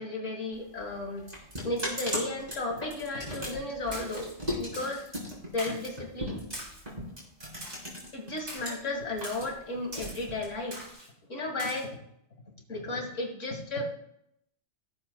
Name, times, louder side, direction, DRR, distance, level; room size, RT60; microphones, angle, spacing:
voice 1, 0.0-5.1 5.5-6.4 8.1-10.8 11.3-12.0 12.7-13.8, left 2 dB, 70° left, 2 dB, 2.2 m, -34 dB
sound 1, 0.5-8.7 9.0-10.9, equal, 30° right, 3.9 m, -38 dB
Splash splatter, 3.9-4.3 4.7-5.0 5.6-5.9 6.5-6.9 7.6-7.9 8.5-8.8 9.2-9.5 9.9-10.3 10.7-11.1 11.6-11.8, equal, 55° right, 3.9 m, -42 dB
16.5 x 7.8 x 2.3 m, 0.75 s
omnidirectional pair, 1.3 m